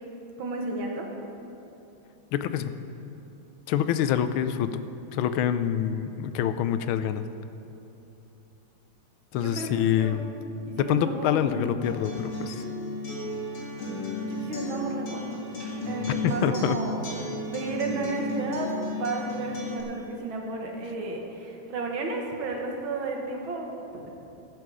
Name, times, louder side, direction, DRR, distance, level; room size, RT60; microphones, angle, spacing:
voice 1, 0.4-1.1 9.3-10.1 10.7-11.6 14.2-15.2 15.9-17.2 17.4-24.1, right 3 dB, 75° right, 1 dB, 2.1 m, -33 dB
voice 2, 2.3-2.7 3.7-4.8 5.1-7.2 9.3-10.3 10.8-12.6 16.1-16.8, left 10 dB, 90° left, 11 dB, 1.4 m, -26 dB
Acoustic guitar, 11.8-19.8, left 1 dB, 70° left, 2.9 m, -34 dB
14.5 x 9.4 x 4.9 m, 2.9 s
omnidirectional pair, 2.2 m